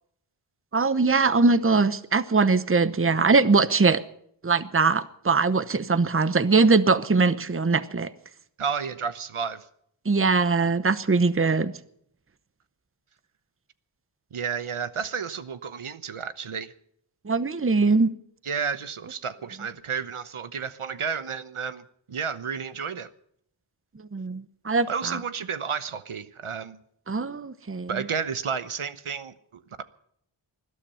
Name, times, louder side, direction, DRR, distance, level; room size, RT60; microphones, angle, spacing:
voice 1, 0.7-4.0 4.4-8.1 10.0-11.7 17.2-18.1 24.1-25.2 27.1-28.1, right 4 dB, 25° right, 14 dB, 0.9 m, -22 dB
voice 2, 8.6-9.6 14.3-16.7 18.4-23.1 24.9-26.8 27.9-29.8, right 6 dB, 80° right, 13 dB, 1.1 m, -32 dB
20.5 x 12.5 x 5.6 m, 0.69 s
wide cardioid pair, 75°, 50 cm